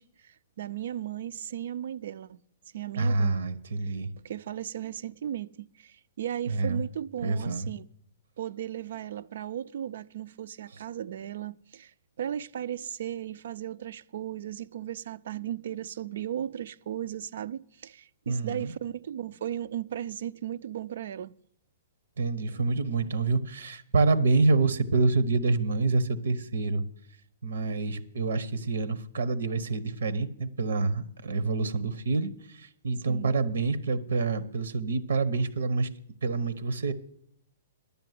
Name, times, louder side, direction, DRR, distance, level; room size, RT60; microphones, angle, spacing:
voice 1, 0.0-2.4 2.7-3.4 3.8-3.9 4.2-7.9 8.4-21.3 33.1-33.3, right 10 dB, 65° right, 0.4 m, -36 dB
voice 2, 3.0-4.1 6.5-6.8 7.2-7.7 18.3-18.7 22.2-26.8 27.4-35.9 36.2-36.9, right 3 dB, 85° right, 0.9 m, -27 dB
10.5 x 6.9 x 9.2 m
hypercardioid pair, 150°, 0 cm